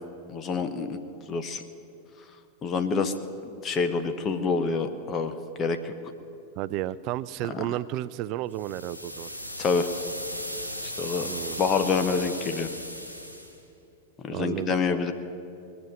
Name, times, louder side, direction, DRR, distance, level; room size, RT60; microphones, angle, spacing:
voice 1, 0.3-1.0 1.3-1.6 2.6-3.1 3.4-5.9 7.5-7.7 9.6-10.0 10.8-11.3 11.6-12.7 14.2-15.1, left 5 dB, 25° left, 9 dB, 0.9 m, -27 dB
voice 2, 6.6-9.3 11.2-11.7 14.3-14.8, right 14 dB, 40° right, 18 dB, 0.4 m, -32 dB
sound 1, 8.5-13.6, equal, 90° left, 1.9 m, -37 dB
21.5 x 7.2 x 9.3 m, 2.7 s
figure-of-eight pair, 90°, 0 cm